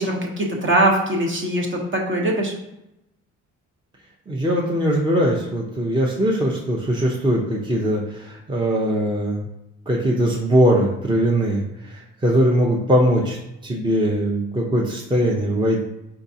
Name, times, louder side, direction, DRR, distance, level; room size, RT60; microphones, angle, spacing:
voice 1, 0.0-2.5, right 1 dB, 40° right, 0 dB, 1.0 m, -21 dB
voice 2, 4.3-9.4 9.9-11.6 11.9-13.4 13.6-15.8, equal, 15° right, -2 dB, 0.7 m, -20 dB
4.7 x 3.8 x 2.7 m, 0.88 s
cardioid pair, 90°, 30 cm